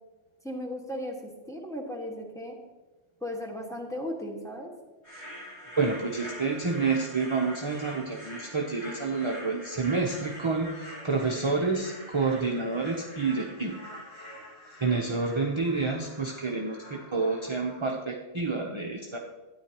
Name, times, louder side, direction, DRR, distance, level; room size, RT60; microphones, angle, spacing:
voice 1, 0.4-2.6 3.2-4.7, left 1 dB, 5° left, 0 dB, 1.5 m, -36 dB
sound 1, 5.0-17.8, equal, 65° left, 3.7 m, -45 dB
voice 2, 5.8-13.8 14.8-19.2, right 4 dB, 30° right, 0 dB, 0.7 m, -29 dB
13.0 x 9.7 x 2.9 m, 1.2 s
omnidirectional pair, 1.2 m